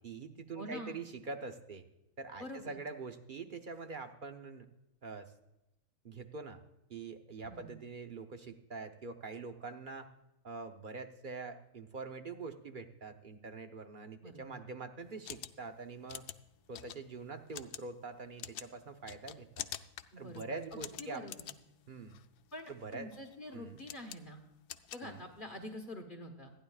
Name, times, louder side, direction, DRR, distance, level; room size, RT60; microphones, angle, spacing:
voice 1, 0.0-1.8 2.2-4.7 5.0-5.3 6.0-6.6 6.9-10.1 10.4-16.3 16.7-19.7 20.2-21.2 21.9-22.2 22.7-23.1 23.5-23.8 25.0-25.3, right 4 dB, 40° right, 6 dB, 0.8 m, -44 dB
voice 2, 0.5-1.0 2.4-2.8 7.4-7.8 14.2-14.6 20.1-21.5 22.5-24.4 24.9-26.5, left 1 dB, 35° left, 2 dB, 1.5 m, -46 dB
sound 1, 15.0-25.7, left 11 dB, 90° left, 1.2 m, -48 dB
27.0 x 10.0 x 2.4 m, 0.91 s
omnidirectional pair, 1.6 m